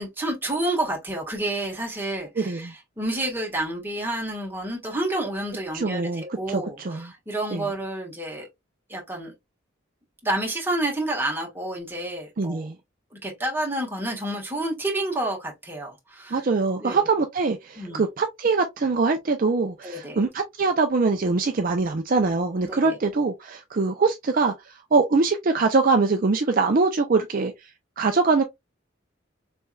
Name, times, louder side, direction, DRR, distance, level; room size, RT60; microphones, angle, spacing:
voice 1, 0.0-8.5 8.9-9.3 10.2-12.6 13.2-16.4 16.8-17.0 17.8-18.0 19.8-20.2 22.7-23.0, right 1 dB, 10° right, 1.4 m, -29 dB
voice 2, 2.4-2.7 5.7-7.1 7.5-7.7 12.4-12.8 16.3-27.5 28.0-28.4, right 4 dB, 45° right, 0.5 m, -23 dB
4.3 x 3.4 x 2.3 m
head